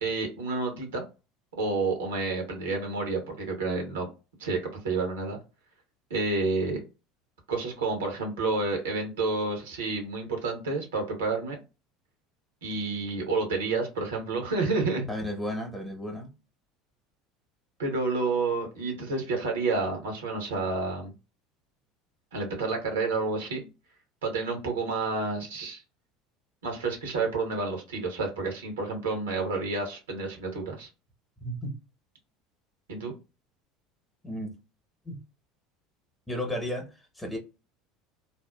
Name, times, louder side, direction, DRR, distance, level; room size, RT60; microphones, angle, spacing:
voice 1, 0.0-1.0 1.6-4.1 4.4-5.4 6.1-6.8 7.5-11.6 12.6-15.1 17.8-21.1 22.3-23.7 24.2-25.8 26.6-30.9 32.9-33.1, right 3 dB, 80° right, 0.9 m, -29 dB
voice 2, 15.1-16.3 31.4-31.7 34.2-34.5 35.0-35.2 36.3-37.4, equal, 10° left, 1.0 m, -33 dB
2.6 x 2.1 x 2.3 m
hypercardioid pair, 75°, 0 cm